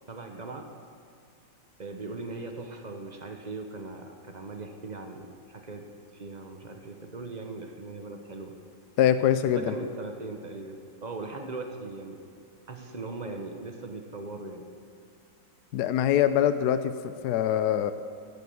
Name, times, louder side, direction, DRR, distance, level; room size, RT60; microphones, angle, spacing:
voice 1, 0.1-0.7 1.8-8.6 9.4-12.2 12.7-14.7, right 3 dB, 40° right, 4 dB, 0.6 m, -39 dB
voice 2, 9.0-9.7 15.7-17.9, left 10 dB, 70° left, 12 dB, 1.0 m, -24 dB
15.0 x 8.2 x 7.0 m, 2.4 s
omnidirectional pair, 2.1 m